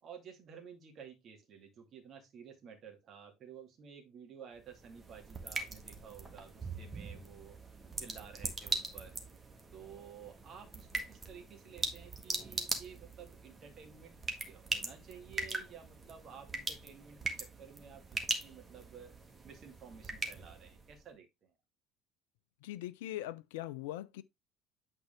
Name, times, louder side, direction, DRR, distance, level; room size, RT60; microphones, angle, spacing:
voice 1, 0.0-7.6 8.0-9.2 9.7-14.2 14.5-19.1 19.4-21.5, right 7 dB, 40° right, 2.4 m, -53 dB
sound 1, 4.6-21.0, right 3 dB, 20° right, 1.6 m, -41 dB
voice 2, 22.6-24.2, left 14 dB, 65° left, 0.4 m, -41 dB
8.8 x 4.4 x 3.6 m
figure-of-eight pair, 60°, 0 cm